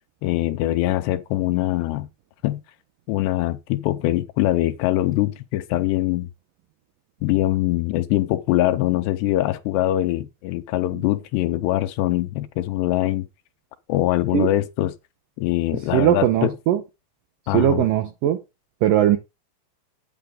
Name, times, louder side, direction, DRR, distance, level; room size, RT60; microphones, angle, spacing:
voice 1, 0.2-2.1 2.4-2.6 3.1-6.3 7.2-13.3 13.9-14.9 15.4-16.5 17.5-17.9, left 15 dB, 80° left, 2.7 m, -23 dB
voice 2, 15.9-16.8 17.5-18.4 18.8-19.2, right 12 dB, 90° right, 1.9 m, -19 dB
9.3 x 9.1 x 3.8 m
omnidirectional pair, 5.2 m